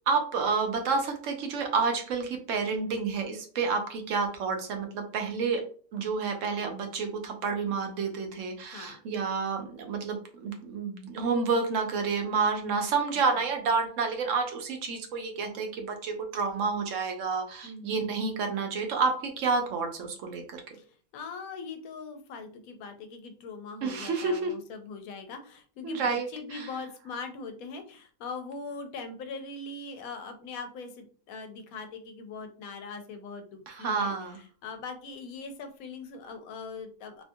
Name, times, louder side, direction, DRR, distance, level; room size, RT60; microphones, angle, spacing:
voice 1, 0.1-5.6 5.9-20.6 23.8-24.5 25.8-26.7 33.7-34.4, right 4 dB, 70° right, 4 dB, 0.9 m, -29 dB
voice 2, 8.7-9.0 17.6-18.2 20.7-37.2, left 4 dB, 80° left, 7 dB, 1.0 m, -41 dB
2.7 x 2.3 x 2.6 m, 0.43 s
omnidirectional pair, 1.5 m